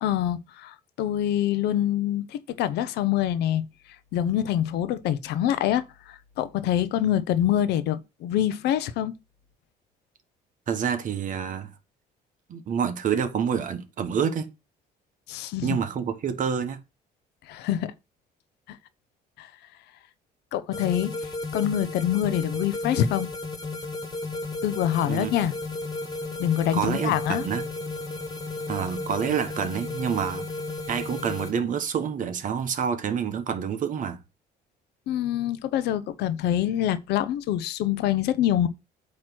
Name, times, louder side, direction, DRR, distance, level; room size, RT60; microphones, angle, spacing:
voice 1, 0.0-3.6 4.1-9.1 15.3-15.8 17.5-17.9 19.4-19.5 20.5-23.3 24.6-25.6 26.4-27.4 35.1-38.7, left 11 dB, 85° left, 0.7 m, -25 dB
voice 2, 10.7-11.7 12.5-14.5 15.6-16.8 25.0-25.3 26.7-27.7 28.7-30.4 30.9-34.2, right 7 dB, 50° right, 1.3 m, -27 dB
sound 1, 20.7-31.5, left 2 dB, 25° left, 1.7 m, -34 dB
8.6 x 3.2 x 6.0 m
cardioid pair, 110°, 17 cm